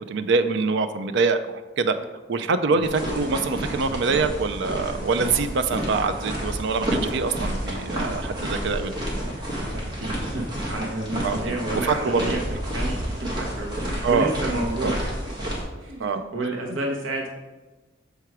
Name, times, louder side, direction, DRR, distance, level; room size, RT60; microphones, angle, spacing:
voice 1, 0.0-2.0 2.3-8.9 11.2-12.4 14.0-14.3 14.8-15.0 16.0-16.2, right 4 dB, 65° right, 9 dB, 0.4 m, -24 dB
sound 1, 2.8-15.6, equal, 25° right, 1.7 m, -30 dB
voice 2, 9.7-12.4 12.7-15.5 15.8-17.3, right 1 dB, 80° right, 1 dB, 1.0 m, -30 dB
6.8 x 4.6 x 4.8 m, 1.2 s
head